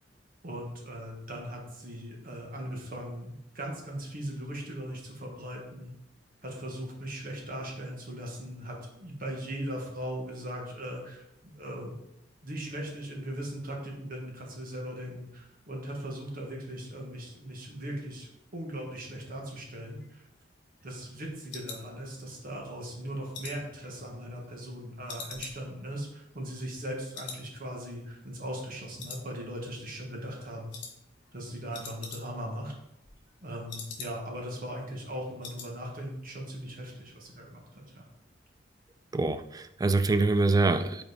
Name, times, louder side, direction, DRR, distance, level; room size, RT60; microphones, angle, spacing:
voice 1, 0.4-5.9 6.4-12.0 12.4-20.2 20.8-30.7 31.3-32.7 33.4-38.0, equal, 50° right, 0 dB, 1.5 m, -39 dB
sound 1, 19.9-22.6 22.9-24.7 25.1-26.9 27.1-27.5 27.8-27.9 28.3-28.7 29.0-29.8 30.1-30.3 30.7-31.0 31.3-31.4 31.6-32.5 32.8-34.4 34.8-34.9 35.1-35.7 36.0-36.3 36.6-36.7, left 5 dB, 65° left, 1.1 m, -45 dB
voice 2, 39.1-41.0, right 3 dB, 20° right, 10 dB, 0.3 m, -25 dB
5.5 x 4.3 x 4.1 m, 0.84 s
head